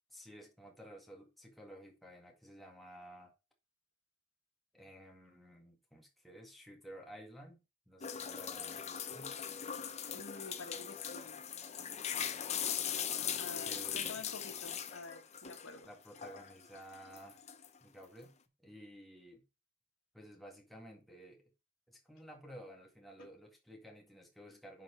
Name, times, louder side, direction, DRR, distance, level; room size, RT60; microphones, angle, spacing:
voice 1, 0.1-3.3 4.7-9.3 13.7-14.5 15.8-17.4 17.8-18.3 18.6-19.4 20.1-21.5 21.9-24.8, equal, ahead, 1.9 m, -54 dB
sound 1, 8.0-15.8 16.2-17.8, left 8 dB, 35° left, 0.7 m, -40 dB
voice 2, 10.1-11.4 13.4-15.9 23.2-23.3, left 3 dB, 75° left, 1.6 m, -49 dB
10.5 x 4.5 x 4.3 m
head